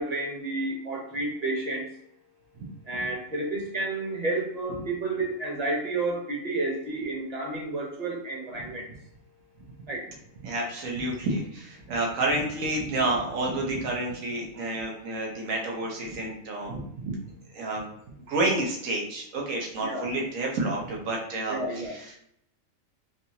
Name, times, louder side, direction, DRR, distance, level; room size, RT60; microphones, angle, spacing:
voice 1, 0.0-1.9 2.9-8.9 9.9-10.1 19.8-20.1 21.5-21.9, right 2 dB, 35° right, -1 dB, 0.9 m, -31 dB
voice 2, 10.4-17.2 17.5-17.9 18.3-22.2, right 2 dB, 85° right, -1 dB, 1.3 m, -29 dB
3.9 x 2.8 x 2.7 m, 0.70 s
omnidirectional pair, 1.4 m